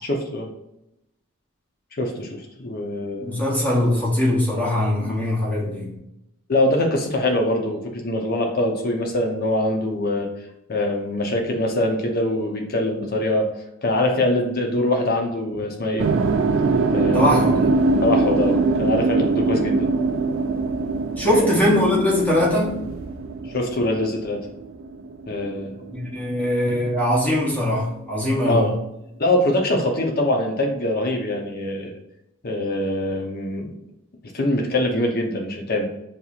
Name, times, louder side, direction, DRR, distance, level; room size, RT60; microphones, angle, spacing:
voice 1, 0.0-0.5 2.0-3.3 5.0-5.1 6.5-10.3 10.7-13.5 13.8-16.1 16.9-17.5 18.0-19.9 21.3-21.6 23.5-24.4 25.3-25.8 28.4-28.7 29.2-31.9 32.4-33.7 34.3-35.8, left 1 dB, 45° left, 0.7 m, -23 dB
voice 2, 3.2-5.9 17.1-17.7 21.1-22.8 25.9-28.8, left 1 dB, 5° left, 0.8 m, -21 dB
sound 1, 16.0-26.1 26.4-28.0, right 3 dB, 60° right, 0.4 m, -23 dB
6.6 x 2.9 x 2.4 m
head